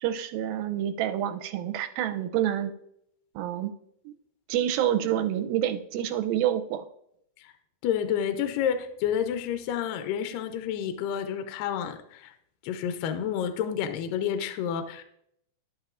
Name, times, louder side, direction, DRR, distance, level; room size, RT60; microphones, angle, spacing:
voice 1, 0.0-2.7 3.4-3.7 4.1-4.2 4.5-6.8, right 11 dB, 90° right, 9 dB, 2.4 m, -28 dB
voice 2, 7.8-12.3 12.6-15.0, left 8 dB, 80° left, 8 dB, 2.2 m, -29 dB
12.0 x 7.5 x 2.4 m, 0.73 s
omnidirectional pair, 4.1 m